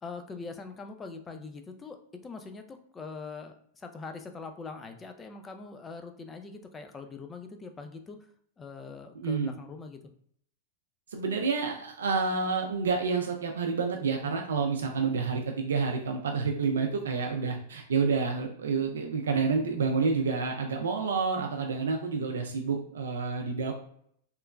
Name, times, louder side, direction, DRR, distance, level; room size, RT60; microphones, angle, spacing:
voice 1, 0.0-8.3 8.6-10.0, left 4 dB, 20° left, 6 dB, 0.3 m, -43 dB
voice 2, 9.2-9.5 11.1-23.8, right 5 dB, 85° right, 2 dB, 0.3 m, -29 dB
3.0 x 2.1 x 2.3 m, 0.66 s
hypercardioid pair, 115°, 0 cm